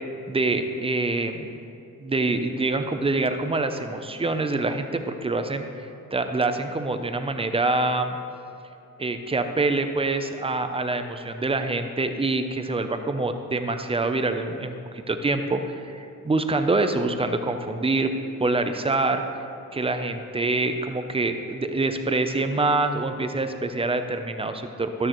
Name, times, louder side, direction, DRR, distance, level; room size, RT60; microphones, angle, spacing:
voice 1, 0.3-1.5 2.0-5.7 6.1-8.2 9.0-18.1 18.4-19.2 19.7-25.1, right 2 dB, 15° right, 7 dB, 0.5 m, -25 dB
13.0 x 12.0 x 3.0 m, 2.7 s
wide cardioid pair, 175°, 35 cm